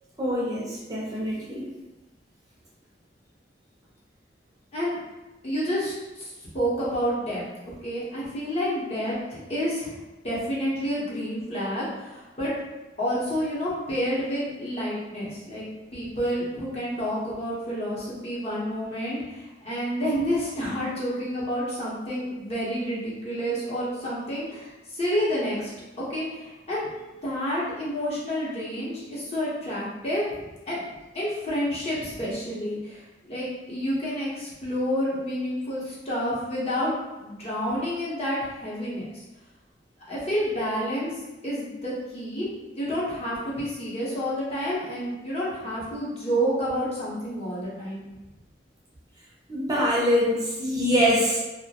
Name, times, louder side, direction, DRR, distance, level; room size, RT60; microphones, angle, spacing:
voice 1, 0.2-1.7 49.5-51.4, equal, 20° right, -6 dB, 0.5 m, -24 dB
voice 2, 5.4-7.4 7.8-10.0 10.2-12.5 13.0-15.7 15.9-25.7 26.0-26.9 27.2-30.2 30.7-30.8 31.1-39.1 40.1-41.1 41.4-42.4 42.8-48.0, equal, 35° left, -7 dB, 0.8 m, -29 dB
2.2 x 2.1 x 2.8 m, 1.1 s
head